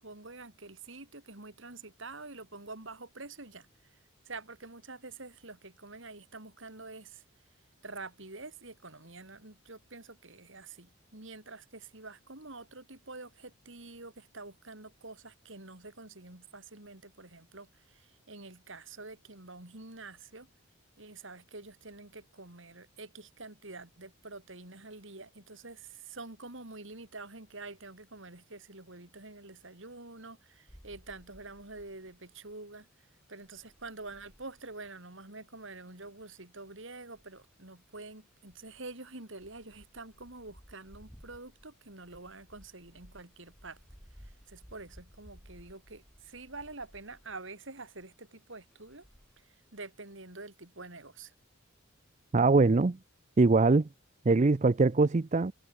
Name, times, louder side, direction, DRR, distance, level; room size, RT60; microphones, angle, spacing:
voice 1, 0.0-4.0 4.2-7.2 7.8-20.5 21.0-32.9 33.3-43.8 44.1-49.1 49.4-51.3, right 3 dB, 60° right, 3.5 m, -47 dB
sound 1, 30.7-32.5 32.8-35.1 35.6-35.7 36.0-36.2 36.4-36.6 37.1-47.6 47.9-48.2 48.5-49.4, equal, ahead, 5.0 m, -58 dB
voice 2, 52.3-53.0 53.4-53.9 54.3-55.5, right 3 dB, 35° right, 0.5 m, -23 dB
head